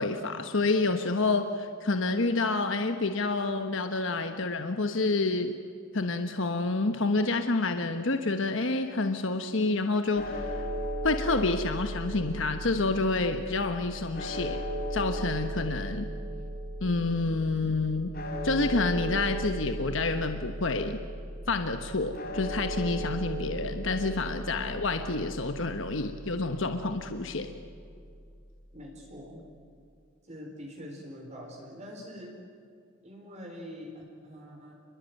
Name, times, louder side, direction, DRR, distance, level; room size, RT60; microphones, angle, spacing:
voice 1, 0.0-5.5 5.9-10.4 11.0-14.6 14.9-16.0 16.8-18.1 18.4-21.0 21.5-27.5, left 3 dB, 60° left, 7 dB, 1.3 m, -28 dB
sound 1, 10.2-28.4, right 1 dB, 45° left, 3.9 m, -37 dB
voice 2, 28.7-29.4 30.2-32.3 33.0-34.7, equal, 30° right, 0 dB, 4.0 m, -44 dB
29.0 x 21.5 x 9.3 m, 2.3 s
head